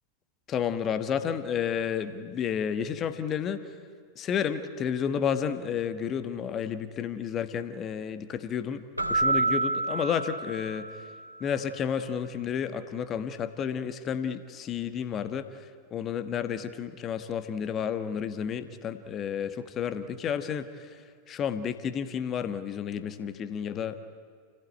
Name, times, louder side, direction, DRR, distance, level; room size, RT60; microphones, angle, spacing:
voice 1, 0.5-3.6 4.1-8.8 9.1-10.9 11.4-21.0 21.3-24.0, left 8 dB, 30° left, 11 dB, 1.4 m, -31 dB
Keyboard (musical), 9.0-11.4, right 3 dB, 85° right, 2.6 m, -28 dB
29.0 x 17.0 x 9.5 m, 2.1 s
figure-of-eight pair, 90°, 0 cm